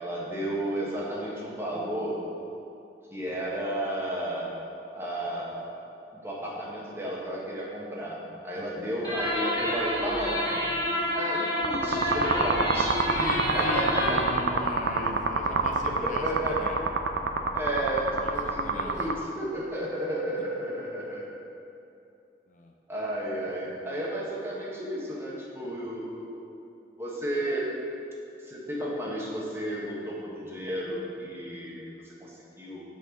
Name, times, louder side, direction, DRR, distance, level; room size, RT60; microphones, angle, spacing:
voice 1, 0.0-2.2 3.1-4.5 4.9-8.2 8.4-10.4 11.1-13.0 13.5-14.6 15.9-16.6 17.5-21.3 22.9-26.7 27.0-27.7 28.4-32.8, right 1 dB, 15° right, -5 dB, 1.4 m, -33 dB
voice 2, 8.5-9.0 13.1-16.8 18.2-19.0 22.5-22.7, left 2 dB, 45° left, 1 dB, 0.6 m, -38 dB
sound 1, 9.0-14.4, left 1 dB, 25° left, 1.8 m, -29 dB
sound 2, 11.6-19.1, right 4 dB, 75° right, 0.5 m, -27 dB
8.2 x 4.4 x 6.5 m, 2.6 s
head